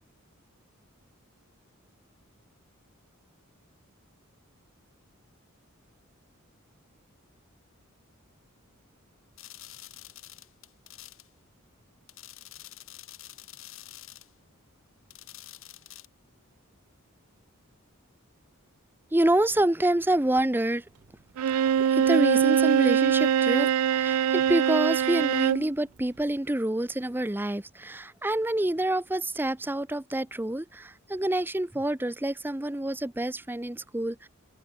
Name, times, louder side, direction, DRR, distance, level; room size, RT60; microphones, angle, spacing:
sound 1, 9.4-11.3 12.1-14.3 15.1-16.1, left 14 dB, 65° left, 6.7 m, -47 dB
voice 1, 19.1-20.8 21.9-34.3, right 1 dB, 10° right, 0.7 m, -27 dB
Bowed string instrument, 21.4-25.7, right 8 dB, 85° right, 0.4 m, -23 dB
open air
head